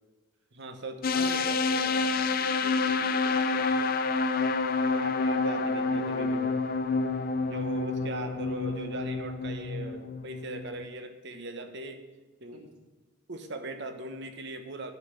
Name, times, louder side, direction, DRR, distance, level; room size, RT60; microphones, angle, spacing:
voice 1, 0.5-1.9 4.9-6.6 7.5-12.0 12.4-12.6 13.3-14.9, right 2 dB, 55° right, 7 dB, 1.0 m, -39 dB
sound 1, 1.0-10.9, left 4 dB, 45° left, 0.5 m, -28 dB
voice 2, 1.7-3.9 12.5-12.6, right 3 dB, 85° right, 0 dB, 1.9 m, -47 dB
9.5 x 5.8 x 8.0 m, 1.2 s
head